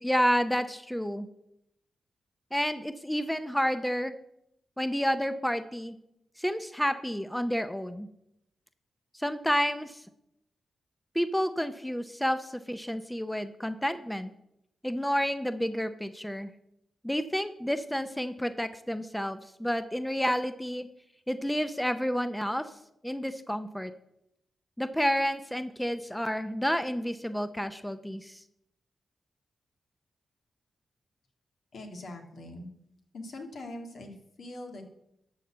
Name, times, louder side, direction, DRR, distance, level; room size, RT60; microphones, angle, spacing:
voice 1, 0.0-1.3 2.5-4.1 4.8-6.0 6.4-8.1 9.1-10.0 11.1-14.3 14.8-16.5 17.0-20.9 21.3-22.7 23.0-23.9 24.8-28.4, equal, 5° left, 10 dB, 0.6 m, -30 dB
voice 2, 31.7-32.7 33.1-34.9, left 1 dB, 75° left, 3 dB, 1.9 m, -42 dB
12.0 x 4.3 x 7.6 m, 0.80 s
cardioid pair, 75°, 0 cm